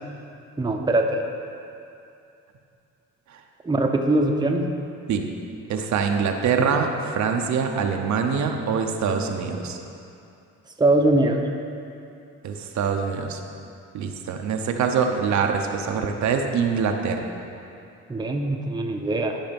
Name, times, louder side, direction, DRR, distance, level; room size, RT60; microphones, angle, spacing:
voice 1, 0.6-1.2 3.6-4.7 10.8-11.5 18.1-19.4, right 2 dB, 15° right, 2 dB, 0.8 m, -22 dB
voice 2, 5.7-9.8 12.4-13.4 13.9-17.2, right 6 dB, 65° right, 3 dB, 0.8 m, -24 dB
11.5 x 5.0 x 5.2 m, 2.7 s
cardioid pair, 90°, 30 cm